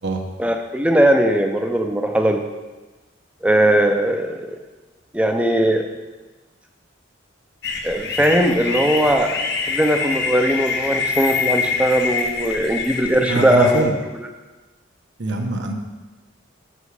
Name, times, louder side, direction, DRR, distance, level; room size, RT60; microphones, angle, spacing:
voice 1, 0.4-2.4 3.4-4.6 5.1-5.9 7.8-9.4 9.7-13.9, right 1 dB, 5° right, 4 dB, 0.5 m, -19 dB
sound 1, 7.6-13.8, left 5 dB, 60° left, 0.8 m, -25 dB
voice 2, 13.3-13.9 15.2-15.7, right 2 dB, 65° right, 2 dB, 1.0 m, -23 dB
7.3 x 7.0 x 4.9 m, 1.2 s
head